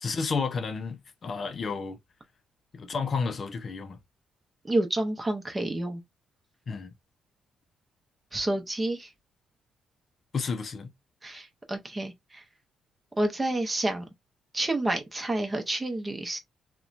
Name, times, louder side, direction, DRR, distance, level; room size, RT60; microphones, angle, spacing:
voice 1, 0.0-2.0 2.7-4.0 6.7-6.9 10.3-10.9, left 5 dB, 45° left, 0.4 m, -31 dB
voice 2, 4.7-6.0 8.3-9.1 11.2-12.4 13.2-14.0 14.5-16.4, right 1 dB, 20° right, 0.7 m, -29 dB
2.7 x 2.2 x 2.4 m
cardioid pair, 90°, 0 cm